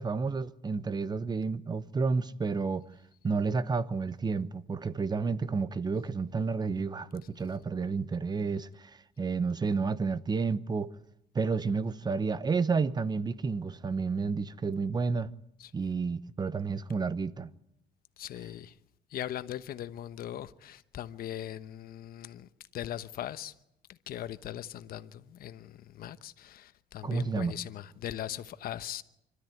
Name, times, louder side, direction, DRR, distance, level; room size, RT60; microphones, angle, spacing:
voice 1, 0.0-2.8 3.2-10.9 11.3-15.3 15.7-17.5 27.0-27.6, right 4 dB, 25° right, 0.9 m, -31 dB
voice 2, 18.2-18.7 19.1-23.5 23.9-29.0, left 11 dB, 60° left, 1.0 m, -40 dB
25.5 x 13.0 x 9.2 m
cardioid pair, 110°, 17 cm